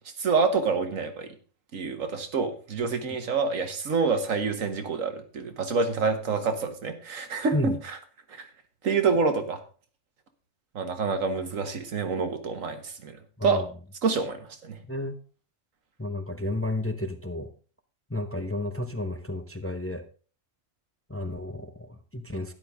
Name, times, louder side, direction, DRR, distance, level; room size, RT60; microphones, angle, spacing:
voice 1, 0.2-1.3 1.7-8.0 8.3-8.5 8.8-9.6 10.8-13.1 13.4-13.7 14.0-14.8, right 4 dB, 85° right, 7 dB, 1.8 m, -27 dB
voice 2, 14.9-15.2 16.0-17.5 18.1-20.0 21.1-22.5, left 1 dB, 15° left, 8 dB, 0.7 m, -32 dB
12.5 x 10.0 x 3.6 m, 0.38 s
omnidirectional pair, 1.3 m